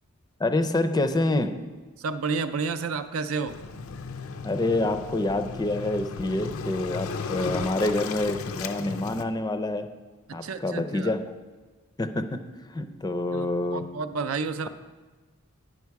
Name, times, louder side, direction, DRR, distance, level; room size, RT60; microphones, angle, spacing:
voice 1, 0.4-1.5 4.4-9.9 10.3-11.2 12.0-12.4 12.7-13.8, left 2 dB, 20° left, 8 dB, 0.5 m, -27 dB
voice 2, 2.0-3.6 10.3-11.1 13.3-14.7, right 4 dB, 70° right, 10 dB, 0.5 m, -31 dB
Waves surf, 3.5-9.2, left 4 dB, 70° left, 0.5 m, -35 dB
9.4 x 6.1 x 4.6 m, 1.3 s
head